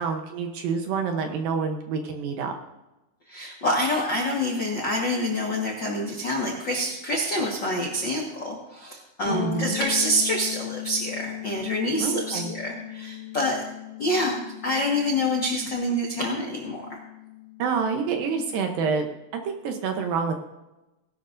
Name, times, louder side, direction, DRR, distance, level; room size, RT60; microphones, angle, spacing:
voice 1, 0.0-2.5 9.3-9.8 12.0-12.5 17.6-19.1 19.3-20.4, right 5 dB, 70° right, 5 dB, 2.4 m, -27 dB
voice 2, 3.3-13.6 14.0-17.0, left 1 dB, 70° left, -1 dB, 1.0 m, -27 dB
sound 1, 9.2-19.0, left 10 dB, 25° left, 1.5 m, -38 dB
19.0 x 11.5 x 2.6 m, 1.0 s
omnidirectional pair, 4.8 m